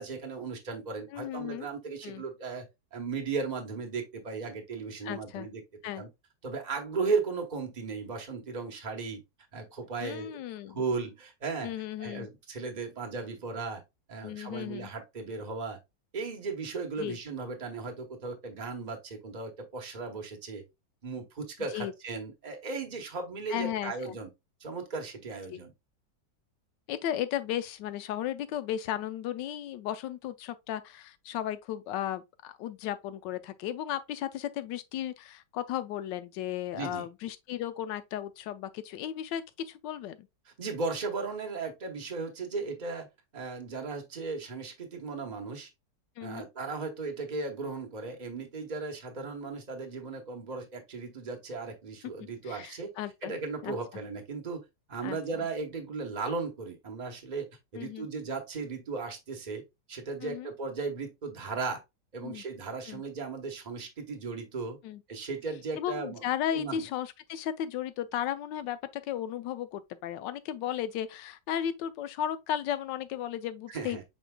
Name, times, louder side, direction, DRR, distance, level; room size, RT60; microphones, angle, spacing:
voice 1, 0.0-2.7 2.9-5.6 6.0-6.1 6.4-9.2 9.5-10.4 10.7-11.7 12.0-13.8 14.1-15.8 16.1-20.6 21.0-24.3 24.6-25.7 36.7-37.1 40.6-43.1 43.3-45.7 46.2-52.9 53.2-54.6 54.9-57.5 57.7-59.6 59.9-61.8 62.1-64.8 65.1-66.2 66.5-66.8 73.7-74.0, right 4 dB, 30° right, 0.9 m, -36 dB
voice 2, 1.1-1.7 2.0-2.2 5.0-5.5 5.8-6.0 10.0-10.8 11.6-12.3 14.2-14.9 17.0-17.2 21.7-21.9 23.5-24.2 25.5-25.6 26.9-40.3 46.2-46.5 52.2-53.3 53.6-53.8 55.0-55.2 57.7-58.1 60.2-60.5 62.2-62.4 62.9-63.0 64.8-65.0 65.8-74.0, left 10 dB, 90° left, 1.2 m, -35 dB
5.3 x 4.4 x 2.2 m
omnidirectional pair, 1.9 m